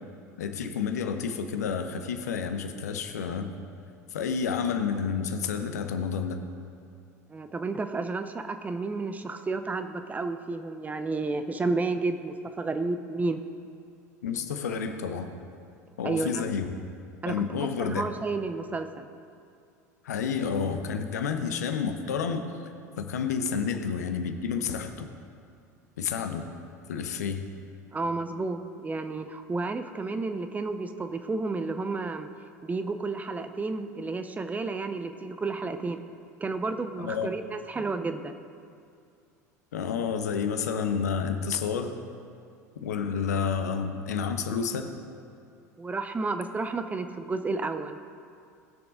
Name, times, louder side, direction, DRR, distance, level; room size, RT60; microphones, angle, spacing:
voice 1, 0.4-3.5 4.1-6.4 14.2-15.3 16.0-16.9 17.2-18.0 20.0-22.5 23.0-25.1 26.0-26.5 26.9-27.5 37.0-37.3 39.7-42.0 42.8-45.0, left 6 dB, 70° left, 7 dB, 0.9 m, -30 dB
voice 2, 7.3-13.4 16.0-16.4 17.2-19.1 27.9-32.3 32.6-36.0 36.4-38.3 45.8-48.0, right 3 dB, 15° right, 9 dB, 0.7 m, -31 dB
19.5 x 6.9 x 3.9 m, 2.4 s
figure-of-eight pair, 75°, 9 cm